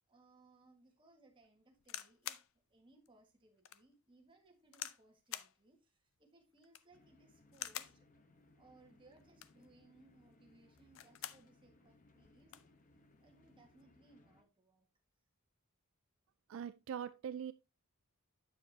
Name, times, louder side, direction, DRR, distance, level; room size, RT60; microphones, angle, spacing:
voice 1, 0.1-2.4 2.7-8.1 8.6-12.6 13.2-14.9, right 2 dB, 20° right, 1.6 m, -66 dB
sound 1, 1.8-2.5 3.1-3.2 3.6-3.8 4.7-5.0 5.3-5.5 6.6-7.0 7.5-8.0 9.2-9.7 10.8-11.5 11.9-12.0 12.2-12.7 13.5-13.8, left 12 dB, 60° left, 0.5 m, -46 dB
sound 2, 6.9-14.4, left 2 dB, 35° left, 0.9 m, -67 dB
voice 2, 16.5-17.5, right 8 dB, 60° right, 0.3 m, -42 dB
8.6 x 7.2 x 2.7 m
head